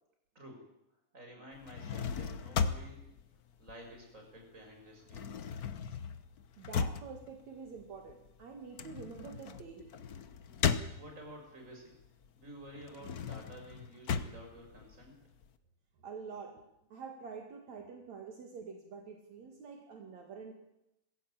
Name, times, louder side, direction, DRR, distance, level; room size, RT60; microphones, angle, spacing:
voice 1, 1.1-3.0 3.6-5.3 11.0-12.0 12.4-15.2, right 1 dB, 25° right, 2 dB, 6.3 m, -51 dB
sound 1, 1.5-4.4 4.7-11.5 11.9-15.5, left 6 dB, 75° left, 0.8 m, -37 dB
voice 2, 6.6-9.9 16.0-16.6 16.9-20.5, right 5 dB, 65° right, 4 dB, 3.3 m, -47 dB
21.0 x 16.0 x 8.8 m, 0.85 s
omnidirectional pair, 3.4 m